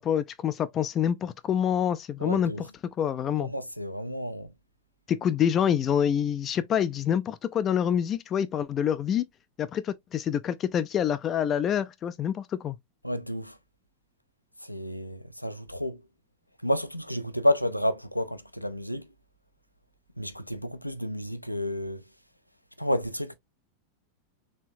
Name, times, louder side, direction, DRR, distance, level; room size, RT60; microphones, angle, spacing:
voice 1, 0.0-2.5 3.0-3.5 5.1-9.2 9.6-12.8, left 9 dB, 30° left, 0.3 m, -26 dB
voice 2, 2.2-2.7 3.4-4.5 13.0-13.6 14.6-16.0 16.6-19.1 20.2-22.0 22.8-23.3, left 1 dB, 90° left, 0.5 m, -30 dB
4.2 x 3.5 x 2.6 m
figure-of-eight pair, 90°, 0 cm